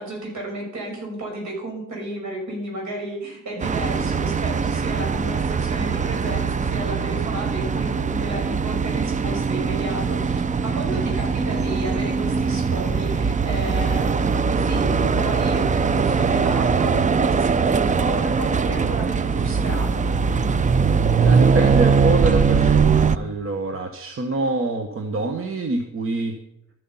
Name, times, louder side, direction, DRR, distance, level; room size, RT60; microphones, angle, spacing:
voice 1, 0.0-20.0, right 1 dB, 70° right, -1 dB, 5.8 m, -32 dB
sound 1, 3.6-23.2, right 5 dB, 25° right, 0.5 m, -21 dB
voice 2, 21.2-26.4, right 2 dB, 45° right, 5 dB, 1.2 m, -26 dB
12.5 x 8.6 x 5.6 m, 0.81 s
cardioid pair, 90°, 30 cm